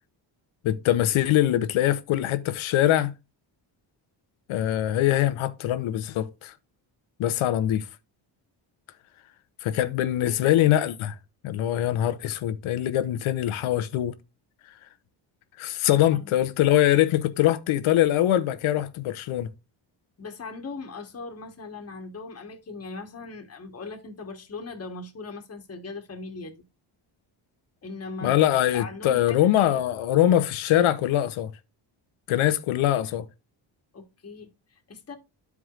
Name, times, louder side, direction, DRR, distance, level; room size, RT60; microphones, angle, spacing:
voice 1, 0.6-3.1 4.5-6.5 7.2-7.9 9.6-11.1 11.4-14.1 15.6-19.5 28.2-31.5 32.3-33.3, left 12 dB, 85° left, 0.9 m, -23 dB
voice 2, 10.2-10.6 16.1-16.3 20.2-26.6 27.8-28.4 28.7-29.8 33.9-35.2, left 3 dB, 30° left, 1.3 m, -39 dB
12.5 x 4.7 x 2.4 m
cardioid pair, 85°, 48 cm